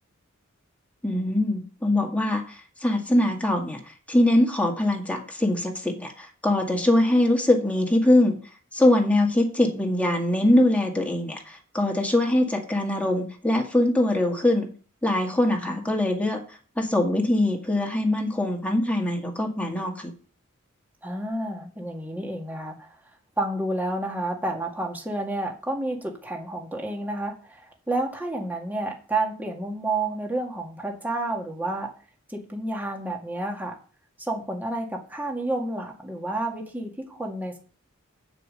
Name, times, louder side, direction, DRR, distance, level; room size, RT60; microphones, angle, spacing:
voice 1, 1.0-3.8 4.1-8.4 8.7-14.7 15.0-16.4 16.8-20.1, left 1 dB, 5° left, 0 dB, 1.9 m, -22 dB
voice 2, 15.5-15.8 21.0-23.0 23.4-31.9 32.3-33.7 34.2-37.6, right 2 dB, 10° right, 1 dB, 1.8 m, -30 dB
9.4 x 5.1 x 6.3 m, 0.39 s
head